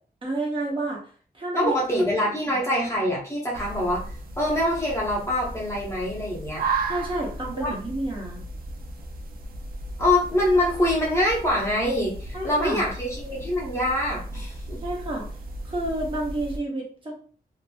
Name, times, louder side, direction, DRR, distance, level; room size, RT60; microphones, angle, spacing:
voice 1, 0.2-1.0 1.3-1.8 6.9-8.4 12.3-12.8 14.8-15.3 15.6-17.1, right 2 dB, 30° right, -3 dB, 0.8 m, -29 dB
voice 2, 1.5-4.1 4.4-6.6 7.5-7.7 10.0-14.8, left 1 dB, 15° left, -4 dB, 0.7 m, -24 dB
sound 1, 3.5-16.6, right 2 dB, 65° right, 0.4 m, -35 dB
2.8 x 2.5 x 2.2 m, 0.44 s
wide cardioid pair, 170°, 16 cm